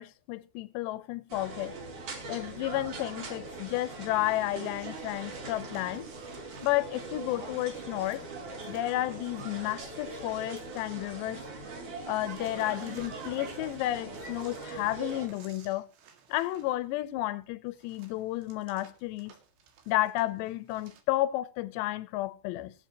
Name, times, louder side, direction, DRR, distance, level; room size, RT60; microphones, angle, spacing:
voice 1, 0.0-1.8 2.3-6.1 6.6-8.2 8.7-11.4 12.1-15.9 16.3-19.3 19.9-22.7, left 16 dB, 90° left, 2.9 m, -32 dB
sound 1, 1.3-15.3, right 3 dB, 50° right, 4.5 m, -41 dB
sound 2, 3.8-11.5 11.7-21.0, right 7 dB, 80° right, 4.1 m, -57 dB
24.0 x 8.0 x 2.9 m
omnidirectional pair, 4.8 m